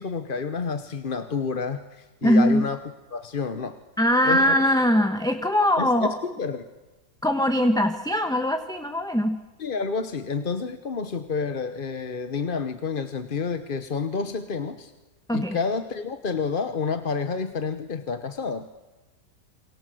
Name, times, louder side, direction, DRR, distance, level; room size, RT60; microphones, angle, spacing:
voice 1, 0.0-2.8 3.1-3.8 4.2-4.6 5.8-6.7 9.6-14.9 15.3-18.7, left 5 dB, 35° left, 10 dB, 1.1 m, -29 dB
voice 2, 2.2-2.6 4.0-6.2 7.2-9.4 15.3-15.6, equal, 5° left, 7 dB, 1.2 m, -21 dB
29.0 x 24.0 x 7.8 m, 1.1 s
omnidirectional pair, 1.8 m